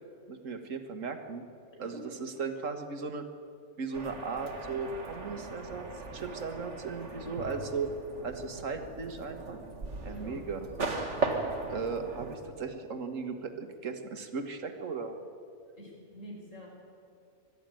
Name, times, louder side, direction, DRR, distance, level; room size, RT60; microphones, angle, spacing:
voice 1, 0.3-1.4 1.8-3.2 3.8-5.9 6.1-7.9 8.2-9.6 10.0-10.6 11.7-15.2, right 4 dB, 85° right, 6 dB, 1.9 m, -37 dB
sound 1, 3.9-12.4, right 3 dB, 65° right, 2.2 m, -38 dB
voice 2, 7.3-7.6 10.1-10.4 11.0-11.2 15.7-16.7, equal, 75° left, -1 dB, 5.7 m, -47 dB
21.0 x 13.5 x 9.1 m, 2.4 s
omnidirectional pair, 1.3 m